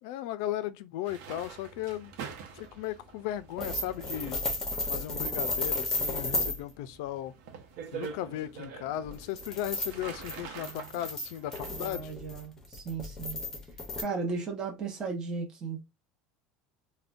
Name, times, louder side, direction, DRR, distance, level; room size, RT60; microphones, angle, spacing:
voice 1, 0.0-2.1 2.6-4.4 4.9-7.3 7.9-12.1 14.2-14.3, left 12 dB, 75° left, 0.4 m, -36 dB
sound 1, 1.0-11.9, right 6 dB, 75° right, 0.8 m, -46 dB
sound 2, 3.6-6.6 9.1-14.0, left 2 dB, 15° left, 0.7 m, -33 dB
voice 2, 11.8-13.4 14.0-15.8, right 4 dB, 25° right, 0.8 m, -36 dB
3.5 x 2.2 x 2.5 m
cardioid pair, 150°, 2 cm